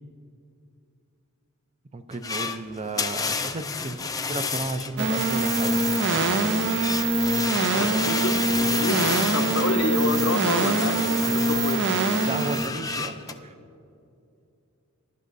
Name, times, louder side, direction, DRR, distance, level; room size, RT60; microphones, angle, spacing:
voice 1, 1.9-5.9 12.2-13.6, right 2 dB, 30° right, 9 dB, 0.6 m, -33 dB
sound 1, 2.1-13.3, left 5 dB, 15° left, 0.4 m, -31 dB
sound 2, 5.0-12.7, right 2 dB, 60° right, 0.8 m, -24 dB
voice 2, 7.7-11.8, left 2 dB, 70° left, 4 dB, 0.9 m, -28 dB
21.5 x 11.0 x 2.7 m, 2.6 s
head